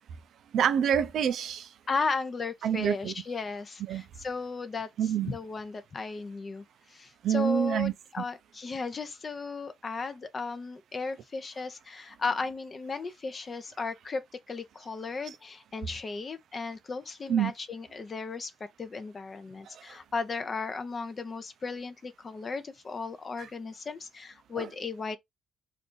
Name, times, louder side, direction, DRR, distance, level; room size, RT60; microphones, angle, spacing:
voice 1, 0.5-1.7 2.6-3.1 3.9-4.1 5.0-5.3 7.2-8.2 17.3-17.5 19.7-19.8 23.4-23.5 24.6-24.7, right 9 dB, 70° right, 0.3 m, -27 dB
voice 2, 1.9-4.9 5.2-18.5 18.8-25.2, left 4 dB, 40° left, 0.5 m, -35 dB
2.5 x 2.3 x 3.7 m
cardioid pair, 90°, 0 cm